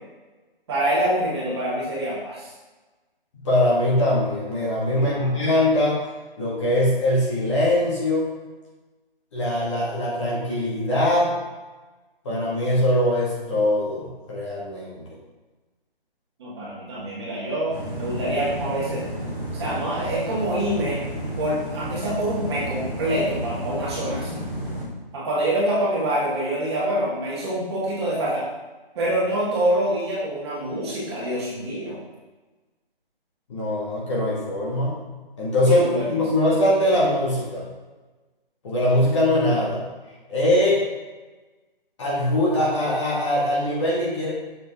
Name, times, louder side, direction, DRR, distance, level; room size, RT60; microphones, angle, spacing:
voice 1, 0.7-2.5 4.9-5.3 16.4-19.0 19.5-21.0 21.4-24.4 25.1-28.4 29.0-32.0 35.7-36.2, right 1 dB, 25° right, -7 dB, 2.0 m, -26 dB
voice 2, 3.3-6.0 6.4-8.3 9.3-11.4 12.2-15.0 33.5-35.0 35.4-37.6 38.6-39.8 40.3-40.8 42.0-44.3, left 1 dB, 30° left, -6 dB, 2.0 m, -22 dB
sound 1, 17.7-24.8, equal, ahead, 0.6 m, -31 dB
6.9 x 5.6 x 3.7 m, 1.2 s
hypercardioid pair, 165°, 29 cm